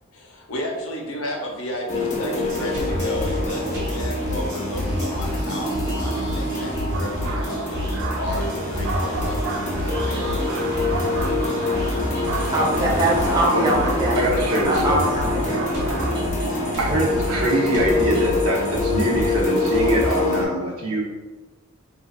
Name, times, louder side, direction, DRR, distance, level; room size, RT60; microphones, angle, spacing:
voice 1, 0.3-10.3, equal, 80° left, -1 dB, 0.6 m, -33 dB
sound 1, 1.9-20.5, left 2 dB, 35° left, 0.5 m, -26 dB
sound 2, 2.4-20.2, left 1 dB, 55° right, 0.7 m, -29 dB
sound 3, 6.9-16.3, right 4 dB, 70° right, 0.3 m, -33 dB
voice 2, 12.5-14.2 14.6-16.0, right 1 dB, 20° right, -4 dB, 0.5 m, -23 dB
voice 3, 13.3-13.8 14.2-15.0 15.5-15.6 16.8-21.0, right 1 dB, 90° right, -2 dB, 0.7 m, -23 dB
3.3 x 2.3 x 2.3 m, 1.2 s
head